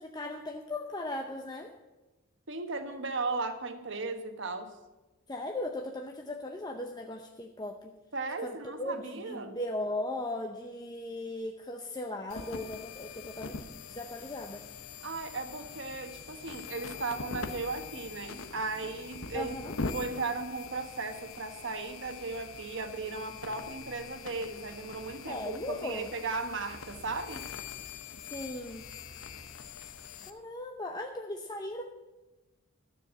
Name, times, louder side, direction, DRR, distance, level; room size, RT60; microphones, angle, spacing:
voice 1, 0.0-1.7 5.3-7.9 8.4-14.6 19.3-19.8 25.3-26.1 28.2-28.9 30.2-31.8, left 1 dB, 20° left, 2 dB, 0.7 m, -38 dB
voice 2, 2.5-4.7 8.1-9.6 15.0-19.5 19.9-27.5, right 3 dB, 60° right, 7 dB, 1.3 m, -36 dB
sound 1, 12.3-30.3, left 4 dB, 75° left, 0.9 m, -43 dB
13.0 x 7.0 x 7.4 m, 1.1 s
head